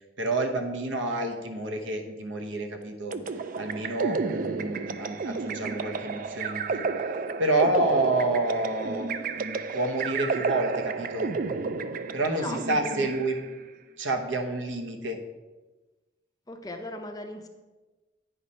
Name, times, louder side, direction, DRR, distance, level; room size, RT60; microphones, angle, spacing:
voice 1, 0.2-3.2 3.6-6.9 7.4-11.3 12.1-13.4 14.0-15.2, right 2 dB, 80° right, 4 dB, 1.0 m, -29 dB
sound 1, 3.1-13.5, right 4 dB, 45° right, 0.3 m, -31 dB
voice 2, 12.3-13.1 16.5-17.5, left 2 dB, 20° left, 6 dB, 0.5 m, -38 dB
9.1 x 5.2 x 4.3 m, 1.2 s
head